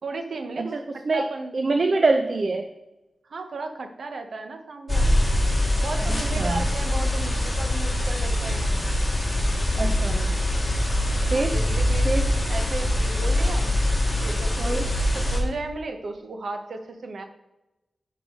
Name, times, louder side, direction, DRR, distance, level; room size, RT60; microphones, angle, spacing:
voice 1, 0.0-0.8 1.1-1.6 1.9-2.0 3.3-5.1 5.8-8.7 11.3-12.1 12.5-13.7 14.2-17.2, right 3 dB, 65° right, 6 dB, 0.9 m, -35 dB
voice 2, 0.6-1.3 1.5-2.7 6.0-6.6 9.8-10.3 11.3-11.6 12.0-12.3 14.6-14.9, right 3 dB, 40° right, 6 dB, 0.5 m, -25 dB
sound 1, 4.9-15.4, left 1 dB, 10° left, 1.6 m, -23 dB
10.0 x 4.7 x 3.7 m, 0.97 s
wide cardioid pair, 170°, 0 cm